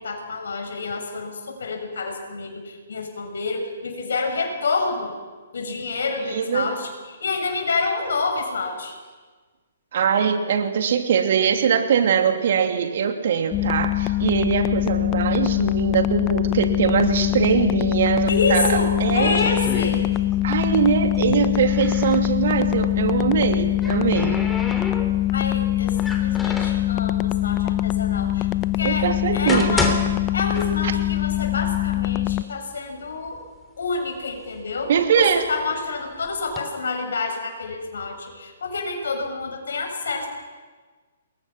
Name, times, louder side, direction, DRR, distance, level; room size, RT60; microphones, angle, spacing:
voice 1, 0.0-5.1 5.5-8.9 18.3-20.1 25.3-28.5 28.7-29.9 30.3-33.4 33.8-40.3, left 3 dB, 65° left, 3 dB, 7.1 m, -28 dB
voice 2, 6.3-6.7 9.9-19.6 20.4-24.4 28.8-29.8 30.8-30.9 34.9-35.5, right 7 dB, 55° right, 5 dB, 2.8 m, -22 dB
sound 1, 13.5-32.4, left 15 dB, 30° left, 0.9 m, -23 dB
sound 2, 18.6-20.5 20.8-22.2 23.4-25.4 26.0-26.9 27.7-27.8 28.4-28.5 29.2-31.1 31.5-31.6 32.3-32.4 32.7-33.4 33.9-35.6 36.2-36.6, left 3 dB, 10° left, 3.0 m, -31 dB
28.0 x 22.0 x 6.1 m, 1.4 s
figure-of-eight pair, 125°, 0 cm